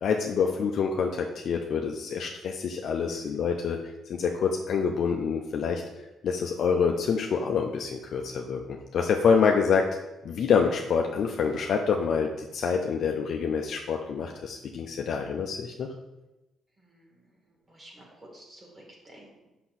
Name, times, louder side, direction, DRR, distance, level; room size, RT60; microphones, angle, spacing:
voice 1, 0.0-3.8 4.1-5.8 6.2-9.9 10.2-15.9, left 6 dB, 65° left, 2 dB, 0.6 m, -26 dB
voice 2, 16.8-17.2 17.7-19.5, right 1 dB, 25° right, -1 dB, 2.4 m, -51 dB
5.9 x 5.8 x 4.2 m, 0.98 s
cardioid pair, 90°, 0 cm